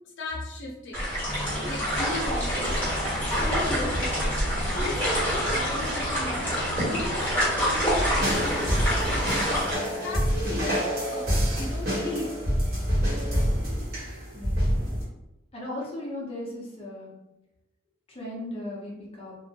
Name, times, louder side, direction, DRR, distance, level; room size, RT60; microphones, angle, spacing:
voice 1, 0.2-1.1 1.6-2.8 3.3-4.1 4.7-6.5 6.9-9.4 10.0-12.4, left 2 dB, 70° left, 0 dB, 0.6 m, -36 dB
sound 1, 0.9-9.7, equal, 10° left, 1.3 m, -27 dB
sound 2, 1.3-9.3, equal, 20° right, 1.1 m, -37 dB
sound 3, 8.2-15.0, equal, 55° right, 1.0 m, -27 dB
voice 2, 14.3-14.7 15.5-17.1 18.1-19.4, left 1 dB, 30° left, -4 dB, 0.7 m, -37 dB
2.7 x 2.1 x 2.7 m, 0.91 s
head